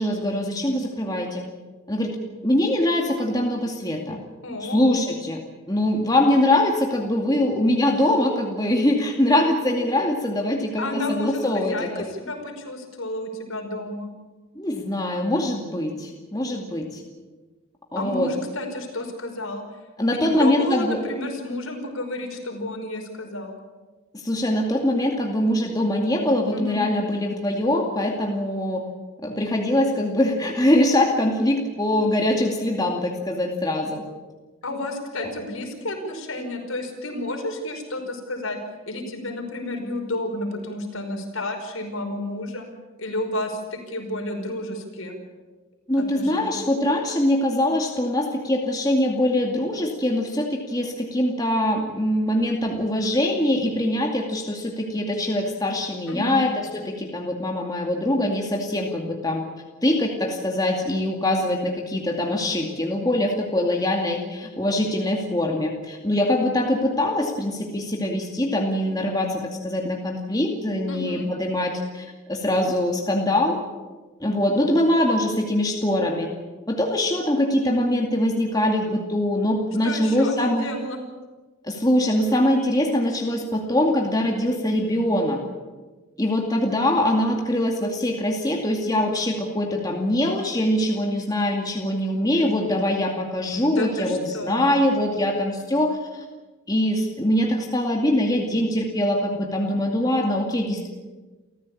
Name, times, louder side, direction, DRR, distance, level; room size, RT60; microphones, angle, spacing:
voice 1, 0.0-1.4 1.9-2.2 2.4-4.2 4.6-5.4 5.7-12.1 14.6-17.0 17.9-18.3 20.0-21.0 24.1-28.8 29.2-34.0 45.9-59.4 59.8-73.6 74.2-76.3 76.7-80.7 81.6-85.4 86.2-96.2 96.7-100.9, left 1 dB, 15° left, 1 dB, 2.3 m, -23 dB
voice 2, 4.4-4.8 10.8-14.1 18.0-19.6 20.1-23.6 26.5-26.8 34.6-38.6 38.9-42.7 43.0-45.2 46.0-46.6 56.1-56.5 70.9-71.3 79.8-81.0 93.6-94.7, left 1 dB, 70° left, 3 dB, 5.3 m, -31 dB
29.0 x 15.0 x 8.7 m, 1.3 s
head